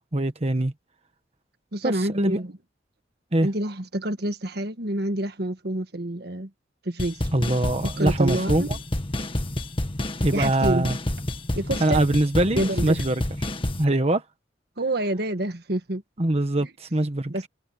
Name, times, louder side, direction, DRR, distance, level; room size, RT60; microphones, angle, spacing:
voice 1, 0.1-0.7 1.8-2.4 3.3-3.5 7.3-8.6 10.2-11.0 11.8-13.1 13.8-14.2 16.2-17.3, right 1 dB, 35° right, 1.3 m, -23 dB
voice 2, 1.7-2.5 3.4-6.5 6.8-7.2 7.8-8.8 10.3-10.9 11.5-12.0 12.5-13.0 14.8-16.0 16.6-16.7 17.3-17.5, right 1 dB, 60° right, 1.6 m, -28 dB
sound 1, 7.0-13.8, left 1 dB, 30° left, 1.5 m, -28 dB
head